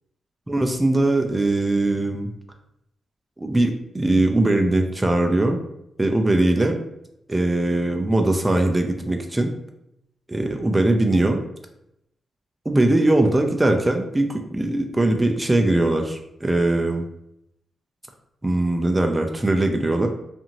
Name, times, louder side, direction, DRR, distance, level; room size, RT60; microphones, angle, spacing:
voice 1, 0.5-2.3 3.4-5.6 6.0-6.8 7.3-9.5 10.3-11.4 12.7-17.0 18.4-20.1, right 2 dB, 15° right, 4 dB, 0.4 m, -20 dB
2.6 x 2.5 x 2.9 m, 0.81 s
wide cardioid pair, 115°, 0 cm